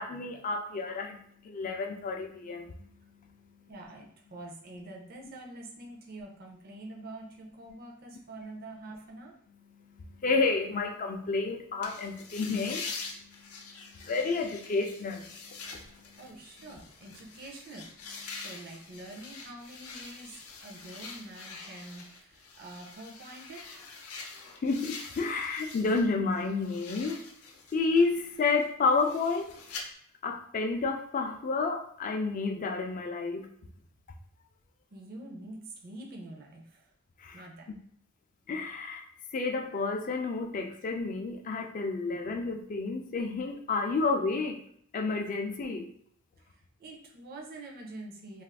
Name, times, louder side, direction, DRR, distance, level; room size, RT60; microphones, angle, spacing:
voice 1, 0.0-3.7 9.7-16.2 18.3-18.5 24.6-27.2 27.7-29.5 30.2-33.5 37.2-37.4 37.7-37.8 38.5-39.0 39.3-44.6 44.9-45.9, left 4 dB, 40° left, 4 dB, 0.3 m, -31 dB
voice 2, 3.7-9.3 16.2-23.6 34.9-36.9 37.3-37.7 46.4-48.4, right 2 dB, 45° right, 0 dB, 0.5 m, -46 dB
sound 1, 11.8-26.1 26.4-29.8, left 4 dB, 90° left, 0.6 m, -45 dB
2.4 x 2.3 x 3.4 m, 0.64 s
head